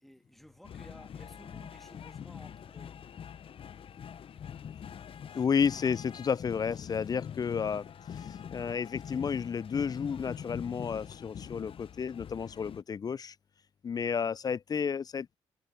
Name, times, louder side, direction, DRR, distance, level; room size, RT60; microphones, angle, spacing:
voice 1, 0.0-3.0, equal, ahead, 1.6 m, -55 dB
sound 1, 0.6-12.8, left 8 dB, 50° left, 0.7 m, -44 dB
voice 2, 5.3-7.9 8.1-13.3 13.8-15.4, left 6 dB, 35° left, 0.3 m, -32 dB
supercardioid pair, 60°, 12 cm